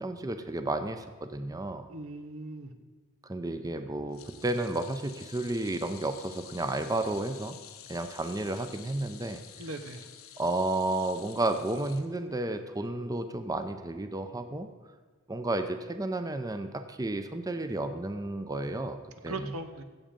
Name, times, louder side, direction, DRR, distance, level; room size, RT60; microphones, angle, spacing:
voice 1, 0.0-1.9 3.2-7.6 7.9-9.4 10.4-14.7 15.3-19.0 19.2-19.5, right 2 dB, 15° right, 8 dB, 0.6 m, -32 dB
voice 2, 1.9-2.7 9.6-10.1 19.3-19.8, right 2 dB, 85° right, 8 dB, 1.0 m, -39 dB
sound 1, 4.1-12.6 13.0-13.2 14.4-14.5, left 10 dB, 80° left, 1.0 m, -50 dB
16.0 x 7.3 x 5.3 m, 1.4 s
head